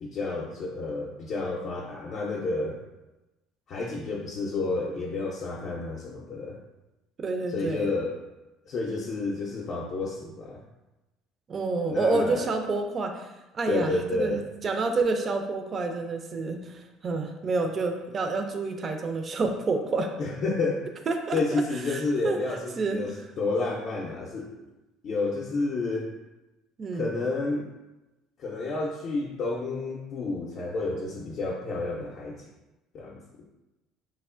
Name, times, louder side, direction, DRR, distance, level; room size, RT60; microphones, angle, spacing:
voice 1, 0.0-2.8 3.7-6.6 7.5-8.2 8.7-10.6 11.9-12.5 13.7-14.4 20.2-20.9 21.3-24.5 25.0-26.1 26.9-27.7 28.4-32.4 32.9-33.2, left 3 dB, 55° left, -2 dB, 0.4 m, -30 dB
voice 2, 7.2-7.9 11.5-13.3 13.5-13.9 14.2-20.1 21.1-21.6 21.9-22.4 22.8-23.3 26.8-27.1, right 3 dB, 40° right, 5 dB, 0.4 m, -28 dB
3.2 x 2.1 x 2.4 m, 1.0 s
supercardioid pair, 80°, 0 cm